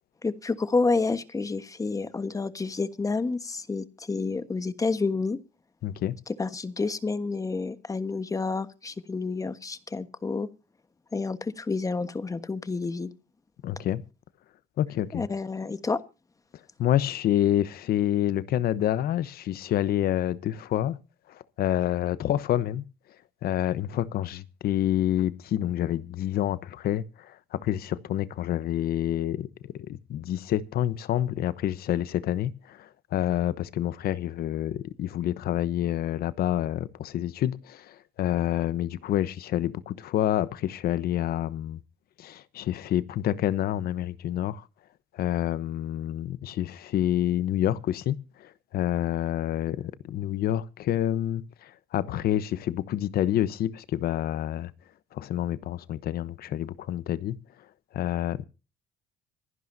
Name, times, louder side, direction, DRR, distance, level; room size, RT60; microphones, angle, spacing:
voice 1, 0.2-5.4 6.4-10.5 11.1-13.1 15.1-16.0, left 3 dB, 20° left, 1.3 m, -29 dB
voice 2, 5.8-6.2 13.6-14.0 14.8-15.3 16.8-21.0 21.3-22.8 23.4-29.5 29.7-41.8 42.2-44.6 45.1-54.7 55.1-57.4 57.9-58.4, left 12 dB, 65° left, 1.0 m, -28 dB
25.5 x 11.0 x 2.7 m
cardioid pair, 110°, 17 cm